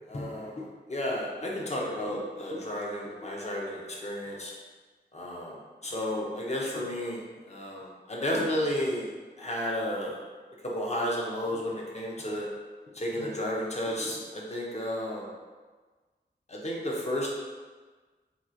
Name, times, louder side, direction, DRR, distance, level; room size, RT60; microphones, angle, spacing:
voice 1, 0.1-0.6 0.9-4.5 5.1-5.6 5.8-7.2 7.5-9.1 9.4-10.1 10.6-12.5 12.9-15.3 16.5-17.3, left 1 dB, 35° left, -3 dB, 0.7 m, -32 dB
3.0 x 2.4 x 3.8 m, 1.4 s
wide cardioid pair, 85°, 19 cm